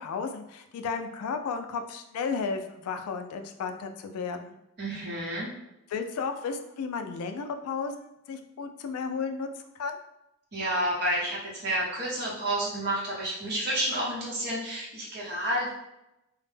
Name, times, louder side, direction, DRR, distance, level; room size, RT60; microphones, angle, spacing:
voice 1, 0.0-4.6 5.9-10.0, left 5 dB, 85° left, 6 dB, 0.3 m, -33 dB
voice 2, 4.8-5.5 10.5-15.7, right 1 dB, 50° right, -5 dB, 0.8 m, -30 dB
2.1 x 2.0 x 3.2 m, 0.88 s
head